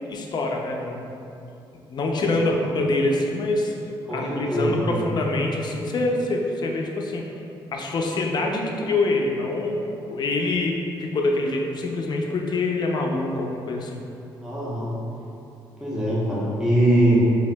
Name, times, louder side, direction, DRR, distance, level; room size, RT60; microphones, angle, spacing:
voice 1, 0.1-1.2 1.9-3.7 4.1-7.3 7.7-9.8 10.1-14.0, left 2 dB, 50° left, 1 dB, 0.5 m, -25 dB
voice 2, 4.1-5.0 14.4-15.0 15.8-17.4, right 1 dB, 5° right, -8 dB, 0.8 m, -22 dB
4.8 x 2.6 x 2.2 m, 2.7 s
cardioid pair, 95°, 9 cm